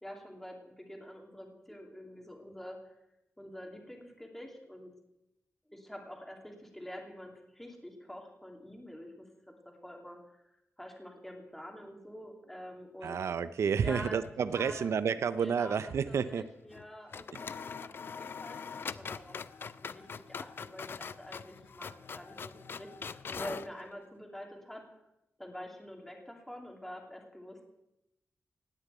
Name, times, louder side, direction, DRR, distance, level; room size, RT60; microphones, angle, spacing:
voice 1, 0.0-2.9 3.4-4.9 5.7-13.2 13.7-14.9 15.4-19.4 19.8-24.8 25.4-27.6, equal, 5° left, 2 dB, 2.5 m, -47 dB
voice 2, 13.0-16.4 17.3-17.4, right 6 dB, 75° right, 13 dB, 0.6 m, -30 dB
sound 1, 14.0-14.8 15.1-15.2 16.7-16.9 17.1-23.7, left 6 dB, 50° left, 0.5 m, -43 dB
17.5 x 6.8 x 9.2 m, 0.88 s
wide cardioid pair, 175°, 5 cm